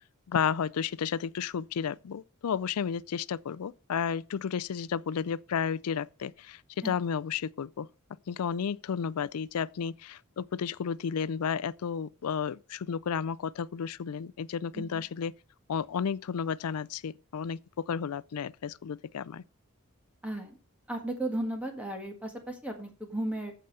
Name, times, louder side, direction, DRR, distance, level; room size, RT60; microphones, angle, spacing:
voice 1, 0.3-7.9 8.3-15.3 15.7-19.4, left 7 dB, 90° left, 0.4 m, -32 dB
voice 2, 20.2-20.6 20.9-23.5, right 1 dB, 5° right, 1.6 m, -35 dB
14.5 x 5.0 x 5.4 m
head